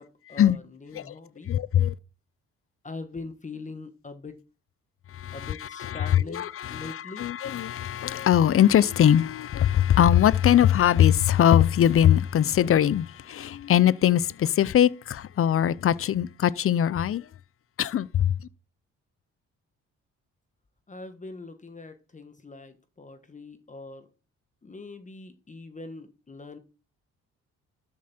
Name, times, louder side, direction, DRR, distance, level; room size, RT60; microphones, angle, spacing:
voice 1, 0.0-1.5 2.8-4.4 5.3-7.2 20.9-24.1 24.6-26.6, left 3 dB, 25° left, 1.5 m, -42 dB
voice 2, 1.5-1.9 5.1-17.3 17.8-18.4, left 10 dB, 45° left, 0.6 m, -21 dB
12.5 x 7.3 x 4.4 m
cardioid pair, 90°, 30 cm